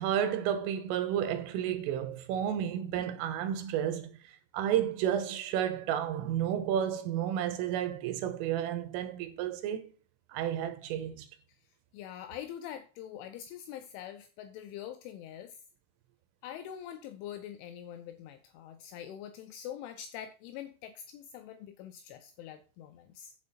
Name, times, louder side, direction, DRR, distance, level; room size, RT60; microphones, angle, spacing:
voice 1, 0.0-9.9 10.3-11.3, right 10 dB, 80° right, 3.5 m, -32 dB
voice 2, 11.9-15.6 16.4-23.3, left 10 dB, 80° left, 2.9 m, -44 dB
8.5 x 7.5 x 4.3 m
omnidirectional pair, 5.9 m